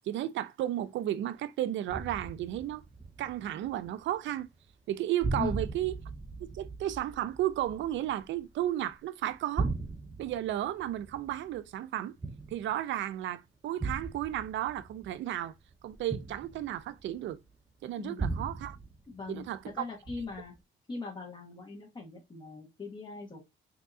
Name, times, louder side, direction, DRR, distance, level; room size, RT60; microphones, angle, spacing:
voice 1, 0.1-2.8 3.2-4.5 4.9-5.9 6.4-9.7 10.2-12.2 12.5-15.5 15.8-17.4 17.8-18.8 19.3-19.6, right 12 dB, 70° right, 0.4 m, -33 dB
sound 1, 1.9-4.2 4.4-4.9 5.2-8.9 9.3-12.9 13.8-17.4 18.2-19.7 20.1-20.6, right 3 dB, 15° right, 0.6 m, -38 dB
voice 2, 19.1-20.5 20.9-23.4, left 4 dB, 25° left, 1.2 m, -40 dB
3.5 x 2.7 x 2.6 m
cardioid pair, 90°, 20 cm